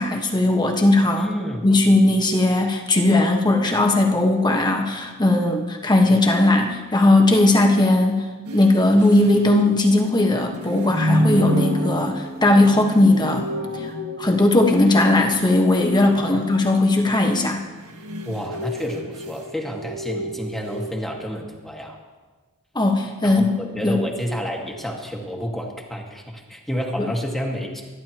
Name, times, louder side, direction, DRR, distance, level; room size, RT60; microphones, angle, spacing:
voice 1, 0.0-1.3 1.6-8.2 8.5-13.5 14.2-17.6 22.7-24.0 27.0-27.1, left 2 dB, 20° left, 2 dB, 1.3 m, -18 dB
voice 2, 1.2-1.7 16.1-16.5 18.2-22.0 23.2-27.8, equal, ahead, -1 dB, 1.8 m, -30 dB
sound 1, 8.4-15.7 17.6-20.9, equal, 80° right, 1.7 m, -29 dB
27.0 x 11.0 x 3.0 m, 1.3 s
head